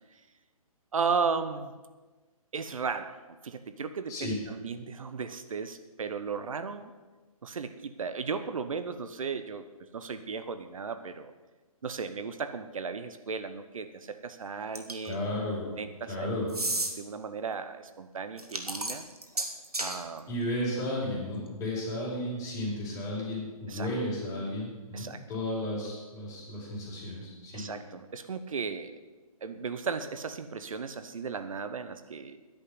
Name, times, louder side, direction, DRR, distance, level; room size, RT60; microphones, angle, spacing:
voice 1, 0.9-1.7 2.5-3.2 3.4-6.9 7.4-9.6 9.9-11.3 11.8-15.3 15.8-16.5 17.0-19.1 19.8-20.3 23.7-23.9 24.9-25.2 27.5-28.9 29.4-32.4, right 5 dB, 65° right, 10 dB, 1.0 m, -35 dB
sound 1, 14.7-15.1 16.5-16.9 18.4-20.0, right 2 dB, 90° right, 2.1 m, -32 dB
voice 2, 15.0-15.7 16.1-16.5 20.3-27.6, left 1 dB, 15° left, -4 dB, 4.9 m, -33 dB
10.5 x 8.5 x 9.4 m, 1.2 s
figure-of-eight pair, 135°, 19 cm